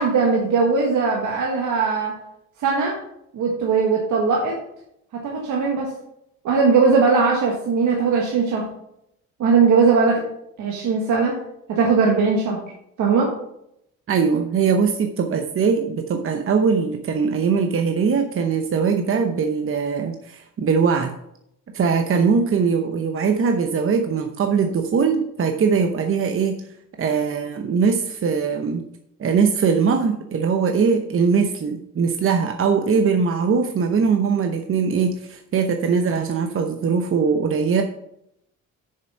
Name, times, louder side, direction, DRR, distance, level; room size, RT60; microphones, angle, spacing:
voice 1, 0.0-2.1 2.6-3.0 3.3-4.5 5.2-5.9 6.4-8.6 9.4-10.2 10.6-11.4 11.7-12.6 13.0-13.3, right 5 dB, 80° right, -1 dB, 1.7 m, -19 dB
voice 2, 14.1-21.1 21.7-26.6 27.0-28.8 29.2-37.8, right 5 dB, 45° right, 5 dB, 0.9 m, -21 dB
6.9 x 6.7 x 5.6 m, 0.77 s
cardioid pair, 90°, 30 cm